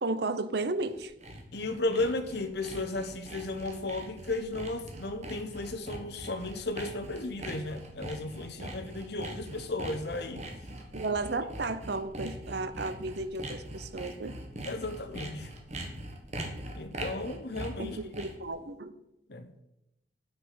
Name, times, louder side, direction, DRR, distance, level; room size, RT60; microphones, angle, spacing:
voice 1, 0.0-1.1 10.9-14.3 17.8-19.0, right 3 dB, 55° right, 11 dB, 0.7 m, -33 dB
Sawing, 0.6-18.5, right 1 dB, 35° right, 1.4 m, -42 dB
voice 2, 1.5-10.5 14.6-15.5 16.7-18.1 19.3-19.5, left 2 dB, 55° left, 8 dB, 1.0 m, -34 dB
8.2 x 6.5 x 5.8 m, 0.87 s
head